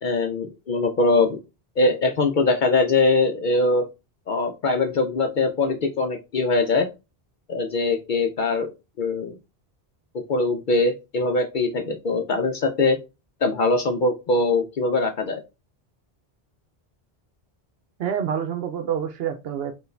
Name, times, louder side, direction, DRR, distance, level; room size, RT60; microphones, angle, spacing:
voice 1, 0.0-1.4 1.8-3.8 4.3-6.9 7.5-8.7 9.0-9.3 10.3-13.0 13.4-15.4, left 3 dB, 60° left, 0.6 m, -22 dB
voice 2, 18.0-19.7, right 8 dB, 75° right, 0.8 m, -27 dB
4.6 x 2.5 x 3.2 m
omnidirectional pair, 1.0 m